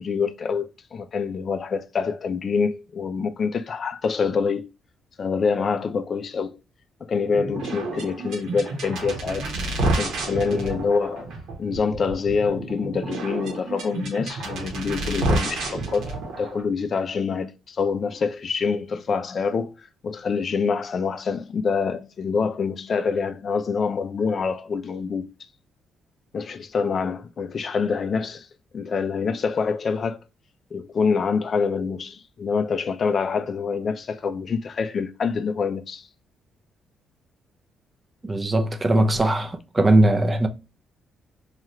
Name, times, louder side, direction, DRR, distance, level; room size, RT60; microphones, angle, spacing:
voice 1, 0.0-4.7 5.2-6.6 7.0-9.5 9.8-11.3 11.6-25.3 26.3-28.5 28.7-30.2 30.7-36.1, left 5 dB, 45° left, 0.3 m, -26 dB
sound 1, 7.3-16.6, right 2 dB, 80° right, 1.0 m, -29 dB
voice 2, 38.2-40.5, right 1 dB, 25° right, 0.5 m, -20 dB
2.8 x 2.3 x 3.1 m
cardioid pair, 90°, 0 cm